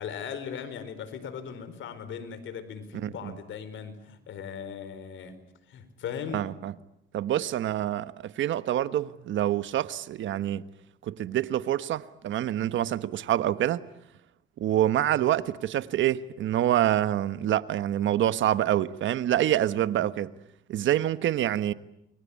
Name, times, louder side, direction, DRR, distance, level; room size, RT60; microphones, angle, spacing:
voice 1, 0.0-5.4 5.7-6.5, left 7 dB, 75° left, 4.6 m, -38 dB
voice 2, 2.9-3.4 6.3-6.7 7.1-10.6 11.0-13.8 14.6-20.3 20.7-21.7, right 12 dB, 75° right, 1.3 m, -26 dB
28.5 x 23.5 x 8.5 m
cardioid pair, 90°, 20 cm